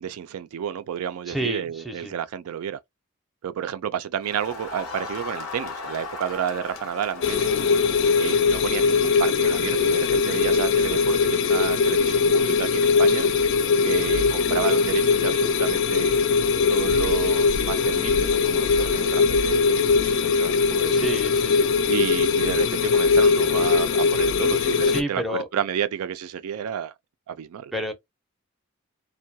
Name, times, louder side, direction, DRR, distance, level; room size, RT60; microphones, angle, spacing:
voice 1, 0.0-2.8 3.4-7.5 8.1-13.3 13.8-16.1 16.7-21.1 21.9-26.9 27.3-27.7, right 8 dB, 90° right, 0.3 m, -31 dB
voice 2, 1.3-2.1 20.8-21.7 24.8-25.5 27.7-27.9, right 1 dB, ahead, 0.5 m, -30 dB
Crowd, 4.2-9.0, left 3 dB, 70° left, 0.7 m, -38 dB
sound 1, 7.2-25.0, left 5 dB, 55° left, 0.3 m, -21 dB
2.2 x 2.2 x 2.6 m
head